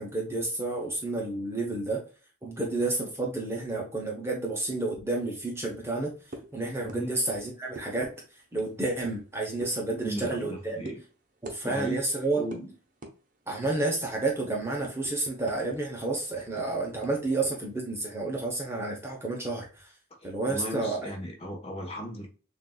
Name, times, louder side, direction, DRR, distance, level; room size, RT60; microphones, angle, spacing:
voice 1, 0.0-2.0 2.4-6.1 6.5-8.1 8.5-10.8 11.4-12.4 13.5-19.9 20.2-21.1, right 2 dB, 10° right, -1 dB, 0.9 m, -30 dB
sound 1, 6.3-6.5 6.9-7.0 7.3-7.4 7.8-7.9 8.6-9.2 9.6-9.8 10.2-10.5 10.8-11.0 11.4-11.6 11.9-12.0 12.5-12.6 13.0-13.2 13.6-13.9 14.3-15.8 16.0-16.2 16.6-17.5, right 1 dB, 40° right, 0.9 m, -42 dB
voice 2, 6.8-7.1 10.0-11.0 11.6-12.0 12.4-12.7 20.2-22.3, right 1 dB, 30° left, 1 dB, 1.2 m, -36 dB
6.6 x 2.6 x 2.3 m, 0.37 s
head